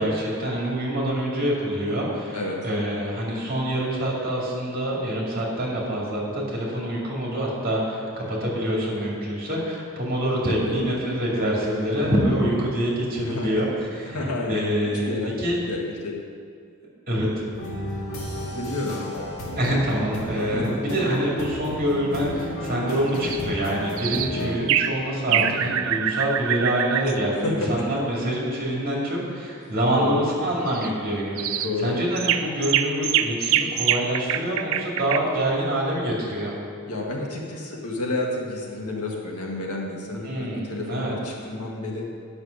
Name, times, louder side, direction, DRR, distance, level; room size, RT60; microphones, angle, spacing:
voice 1, 0.0-2.4 2.6-15.6 17.1-17.3 19.6-36.6 40.2-41.1, equal, 40° right, -4 dB, 2.4 m, -26 dB
voice 2, 2.3-2.6 10.6-10.9 13.2-13.7 14.1-14.6 15.1-15.4 15.7-16.2 18.4-19.1 20.5-20.8 25.3-25.8 27.3-27.9 29.9-30.2 31.5-32.0 36.8-42.1, left 2 dB, 80° left, -1 dB, 1.7 m, -30 dB
sound 1, 17.5-24.5, equal, 60° left, 2.0 m, -33 dB
sound 2, 23.2-23.4 24.0-24.3 24.7-25.0 25.3-27.1 30.7-30.9 31.4-31.7 32.2-35.2, right 10 dB, 60° right, 0.4 m, -24 dB
9.5 x 6.3 x 6.5 m, 2.2 s
head